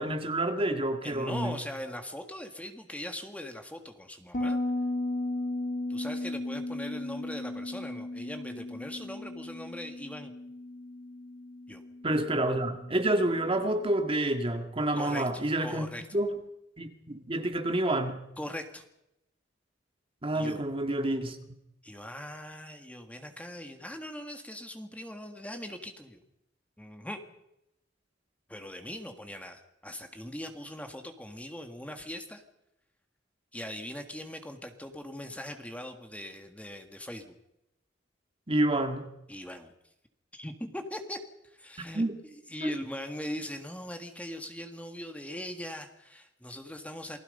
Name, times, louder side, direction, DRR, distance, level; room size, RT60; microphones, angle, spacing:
voice 1, 0.0-1.5 12.0-16.4 16.8-18.2 20.2-21.4 38.5-39.1 41.9-42.2 42.6-42.7, right 1 dB, 30° right, 6 dB, 1.9 m, -28 dB
voice 2, 1.0-4.6 5.9-10.3 11.7-11.8 14.9-16.1 18.4-18.8 20.3-20.6 21.8-26.2 26.8-27.2 28.5-32.4 33.5-37.3 39.3-39.7 40.3-47.2, left 1 dB, 10° left, 5 dB, 1.8 m, -41 dB
Bass guitar, 4.3-13.7, left 2 dB, 45° left, 3.0 m, -36 dB
28.5 x 20.0 x 5.5 m, 0.85 s
head